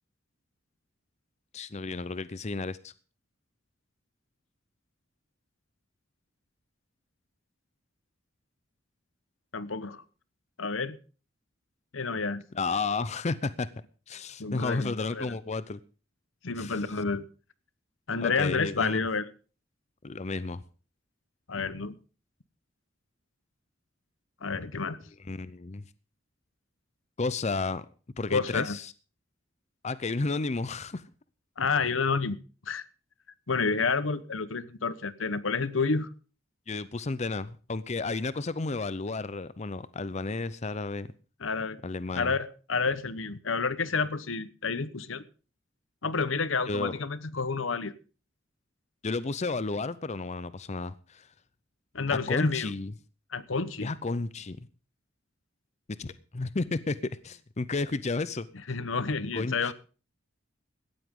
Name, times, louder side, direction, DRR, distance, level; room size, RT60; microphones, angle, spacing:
voice 1, 1.5-2.9 12.5-13.7 14.1-15.8 16.6-16.9 18.2-19.0 20.0-20.6 25.3-25.8 27.2-27.9 28.2-28.9 29.8-31.0 36.7-41.1 41.8-42.4 46.7-46.9 49.0-51.3 52.3-52.9 53.8-54.7 56.0-57.0 57.2-58.5 59.3-59.7, left 3 dB, 35° left, 0.6 m, -32 dB
voice 2, 9.5-10.0 10.6-11.0 11.9-12.4 14.4-15.4 16.4-17.3 18.1-19.3 21.5-21.9 24.4-25.0 28.3-28.8 31.6-32.4 32.7-32.9 33.5-36.1 41.4-41.8 42.1-45.2 46.0-47.9 51.9-52.7 53.3-53.9 58.7-59.7, left 4 dB, 80° left, 1.0 m, -29 dB
17.0 x 13.0 x 3.7 m
head